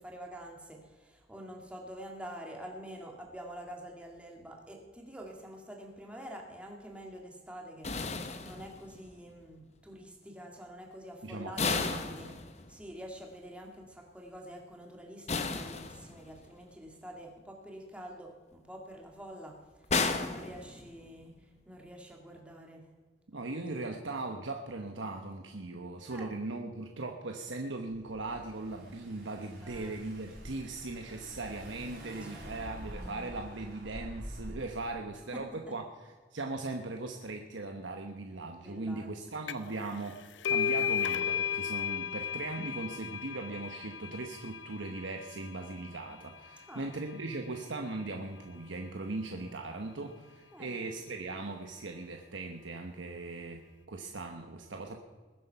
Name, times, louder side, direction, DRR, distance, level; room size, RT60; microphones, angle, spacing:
voice 1, 0.0-12.3 12.7-19.6 20.2-21.3 21.7-22.8 26.1-26.3 29.6-30.0 32.0-32.5 35.3-35.4 38.6-39.1 46.7-46.9 50.5-50.8, equal, 5° right, 0 dB, 2.0 m, -47 dB
sound 1, 7.8-9.1 11.6-12.9 15.3-16.5 19.9-21.2, left 4 dB, 35° left, 0.9 m, -34 dB
voice 2, 11.2-12.4 23.3-53.6 53.9-55.0, right 2 dB, 80° right, 3 dB, 1.1 m, -39 dB
Car / Engine, 27.9-34.8, equal, 55° right, 5.3 m, -47 dB
sound 2, 39.5-39.8 40.1-47.4, left 8 dB, 75° left, 0.5 m, -35 dB
20.5 x 7.8 x 5.7 m, 1.4 s
head